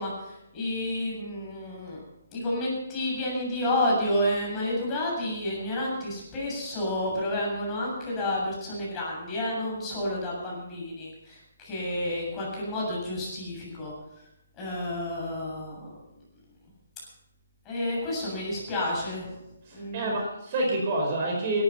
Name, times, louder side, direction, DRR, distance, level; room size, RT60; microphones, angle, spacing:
voice 1, 0.0-2.0 2.3-13.9 14.6-16.0 17.6-19.4 19.7-20.2, left 1 dB, 15° left, -4 dB, 7.6 m, -30 dB
voice 2, 19.7-21.6, right 2 dB, 35° right, 0 dB, 4.7 m, -28 dB
17.0 x 12.5 x 5.6 m, 0.88 s
hypercardioid pair, 160°, 0 cm